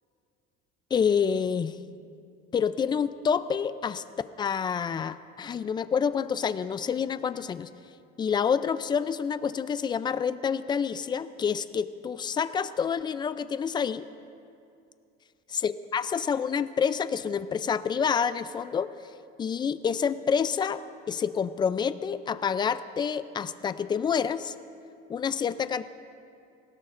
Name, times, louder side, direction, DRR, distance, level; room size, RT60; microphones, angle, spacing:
voice 1, 0.9-1.8 2.5-4.0 4.4-7.7 8.2-14.1 15.5-18.9 19.4-20.8 21.1-24.5 25.1-25.8, left 7 dB, 20° left, 13 dB, 0.4 m, -28 dB
27.0 x 17.0 x 2.5 m, 2.5 s
cardioid pair, 150°, 21 cm